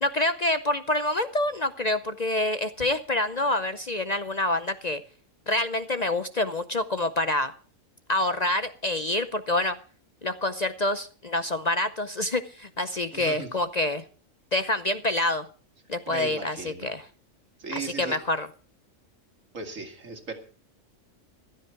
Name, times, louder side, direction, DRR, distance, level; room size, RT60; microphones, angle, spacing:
voice 1, 0.0-5.0 5.5-7.5 8.1-9.8 10.2-14.0 14.5-15.5 15.9-17.1 17.7-18.5, left 1 dB, 40° left, 11 dB, 0.7 m, -27 dB
voice 2, 13.1-13.5 16.1-17.0 17.6-18.2 19.5-20.3, right 4 dB, 80° right, 5 dB, 2.7 m, -37 dB
15.5 x 12.5 x 4.6 m, 0.39 s
omnidirectional pair, 1.4 m